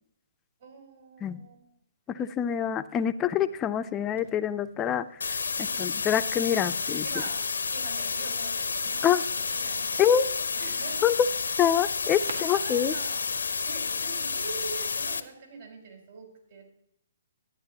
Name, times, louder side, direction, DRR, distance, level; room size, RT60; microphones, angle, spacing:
voice 1, 0.6-1.7 2.2-2.4 5.6-6.0 6.9-11.2 12.2-16.7, right 4 dB, 55° right, 2 dB, 3.6 m, -44 dB
voice 2, 2.2-5.0 5.8-7.0 9.0-9.2 10.0-10.3 11.0-11.1 11.6-12.9, left 9 dB, 15° left, 11 dB, 0.4 m, -25 dB
Fireworks, 3.5-14.9, right 2 dB, 90° right, 1.8 m, -51 dB
sound 1, 5.2-15.2, left 5 dB, 90° left, 0.6 m, -30 dB
11.5 x 9.6 x 2.9 m, 0.74 s
hypercardioid pair, 150°, 0 cm